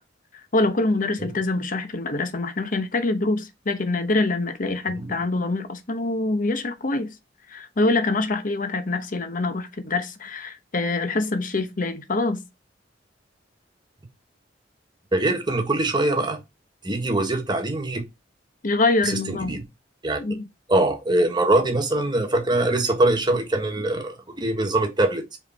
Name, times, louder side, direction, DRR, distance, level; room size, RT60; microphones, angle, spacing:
voice 1, 0.5-7.1 7.5-12.5 18.6-19.6 20.2-20.5, left 2 dB, 45° left, 0.9 m, -25 dB
voice 2, 15.1-16.4 16.8-18.0 19.0-19.6 20.0-20.2 20.7-25.4, right 2 dB, 25° right, 1.3 m, -23 dB
5.0 x 4.4 x 4.3 m
head